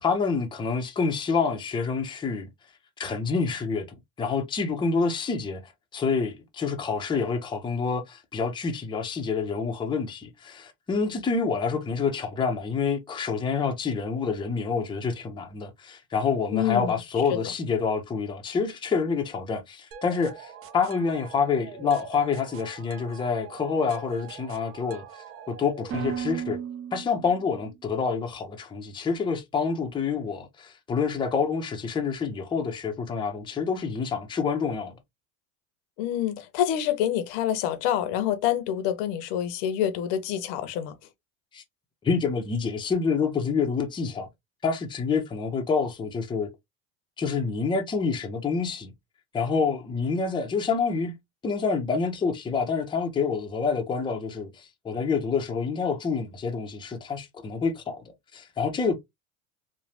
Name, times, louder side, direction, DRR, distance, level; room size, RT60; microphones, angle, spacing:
voice 1, 0.0-2.5 3.0-3.9 4.2-25.0 25.5-26.6 26.9-35.0 41.5-41.6 42.0-44.3 44.6-46.5 47.2-48.9 49.3-51.1 51.4-59.0, left 5 dB, 15° left, 0.6 m, -27 dB
voice 2, 16.5-17.0 17.3-17.4 36.0-40.9, left 10 dB, 70° left, 0.7 m, -27 dB
sound 1, 19.9-27.7, right 8 dB, 40° right, 0.6 m, -39 dB
3.1 x 2.1 x 2.7 m
supercardioid pair, 110°, 35 cm